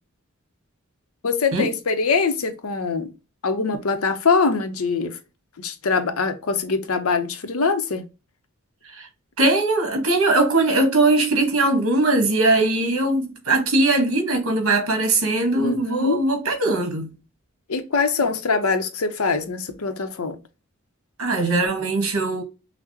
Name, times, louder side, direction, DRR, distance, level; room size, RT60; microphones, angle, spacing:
voice 1, 1.2-3.1 3.4-5.2 5.6-8.0 15.6-16.2 17.7-20.4, left 4 dB, 85° left, 0.7 m, -23 dB
voice 2, 9.4-17.1 21.2-22.4, right 2 dB, 65° right, 1.4 m, -20 dB
5.8 x 2.1 x 2.8 m
head